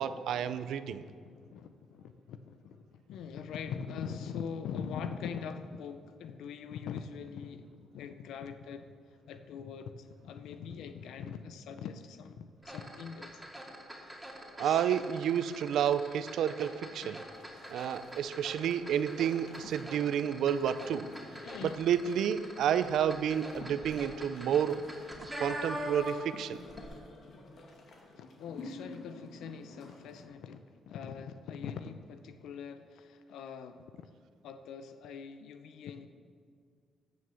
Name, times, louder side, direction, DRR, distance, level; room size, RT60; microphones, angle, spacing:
voice 1, 0.0-1.0 14.6-17.2 17.7-21.1 21.6-24.8 25.4-26.6, right 9 dB, 75° right, 13 dB, 0.5 m, -30 dB
voice 2, 0.9-13.4 14.6-14.8 17.0-17.2 21.2-21.8 28.2-34.1 34.4-36.1, left 7 dB, 80° left, 9 dB, 0.6 m, -43 dB
sound 1, 12.6-26.4 26.7-26.9, equal, 5° right, 2.5 m, -44 dB
sound 2, 17.3-30.3, left 2 dB, 60° left, 2.2 m, -51 dB
14.0 x 6.4 x 7.0 m, 2.1 s
cardioid pair, 90°, 0 cm